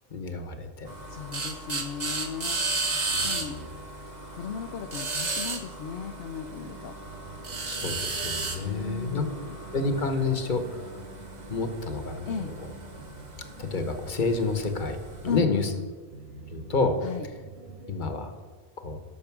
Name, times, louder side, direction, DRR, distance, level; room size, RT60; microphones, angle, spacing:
voice 1, 0.1-0.9 3.1-3.7 7.6-9.2 9.7-10.8 11.5-12.7 13.6-15.0 15.2-15.7 16.5-17.0 17.9-18.3 18.8-19.0, left 3 dB, 50° left, 7 dB, 1.2 m, -29 dB
sound 1, 0.9-15.4, right 3 dB, 45° right, 1.2 m, -35 dB
voice 2, 1.1-3.6 4.3-7.0 8.6-9.5 12.3-12.6 15.3-15.9 17.0-17.3, left 7 dB, 70° left, 5 dB, 0.8 m, -36 dB
sound 2, 6.4-18.1, right 3 dB, 80° right, 1.5 m, -47 dB
12.5 x 6.5 x 6.0 m, 1.4 s
omnidirectional pair, 1.1 m